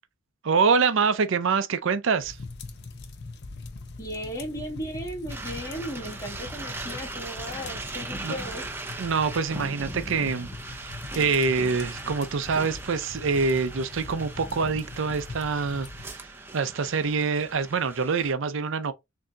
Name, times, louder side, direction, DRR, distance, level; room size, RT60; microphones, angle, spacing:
voice 1, 0.4-2.4 8.2-8.4 9.0-10.5 11.1-18.9, right 5 dB, 65° right, 0.5 m, -25 dB
sound 1, 2.2-16.1, left 3 dB, 55° left, 0.6 m, -41 dB
voice 2, 4.0-8.7, equal, 15° left, 1.5 m, -36 dB
sound 2, 5.3-18.3, right 2 dB, 10° right, 0.5 m, -39 dB
6.3 x 2.7 x 2.3 m
head